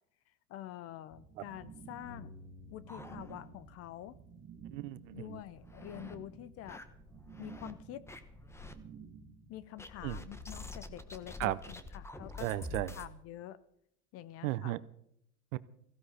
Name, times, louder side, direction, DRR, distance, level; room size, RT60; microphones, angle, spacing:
voice 1, 0.5-2.3 2.7-4.2 5.1-6.8 7.4-8.1 9.5-12.6 13.0-13.6 14.1-14.7, left 13 dB, 35° left, 18 dB, 0.6 m, -46 dB
sound 1, 1.1-9.7, right 6 dB, 20° right, 2.9 m, -53 dB
Bass guitar, 2.0-8.3, left 3 dB, 60° left, 2.8 m, -59 dB
sound 2, 2.2-3.7 4.1-4.2 4.5-4.6 5.2-6.2 6.7-7.7 8.1-8.8 9.8-13.1, left 2 dB, 5° left, 1.1 m, -47 dB
voice 2, 4.7-5.4 10.0-10.2 11.4-11.6 12.4-12.9 14.4-14.8 15.5-15.6, right 17 dB, 55° right, 17 dB, 0.8 m, -35 dB
17.5 x 15.5 x 4.3 m, 0.73 s
hypercardioid pair, 110°, 45 cm